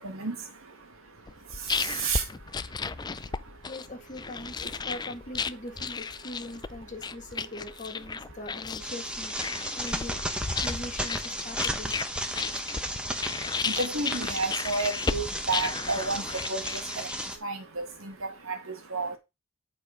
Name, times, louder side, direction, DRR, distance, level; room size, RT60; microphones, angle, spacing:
voice 1, 0.0-3.7 4.7-4.9 7.4-7.5 9.5-9.9 11.5-11.6 12.3-19.2, right 3 dB, 65° right, 2.0 m, -34 dB
sound 1, 1.3-17.4, left 5 dB, 20° left, 0.4 m, -34 dB
voice 2, 3.7-9.4 9.7-10.2 10.6-11.9, left 1 dB, 35° left, 1.9 m, -41 dB
sound 2, 8.8-17.4, equal, 5° right, 1.2 m, -34 dB
10.5 x 4.4 x 5.0 m
head